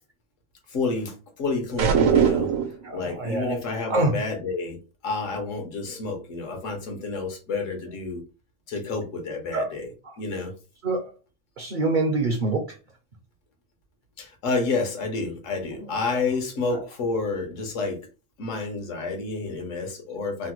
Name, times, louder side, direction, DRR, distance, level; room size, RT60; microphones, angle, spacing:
voice 1, 0.7-2.5 2.9-8.2 8.7-9.9 10.2-10.5 14.2-18.0 18.4-20.5, left 3 dB, 80° left, 1.2 m, -29 dB
sound 1, 1.8-2.8, right 7 dB, 90° right, 1.0 m, -20 dB
voice 2, 2.8-3.6 3.9-4.1 9.5-9.7 10.0-10.2 10.8-11.1 11.6-12.8 15.8-16.2 16.7-16.8, right 2 dB, 55° right, 0.5 m, -26 dB
3.2 x 2.1 x 2.9 m
omnidirectional pair, 1.3 m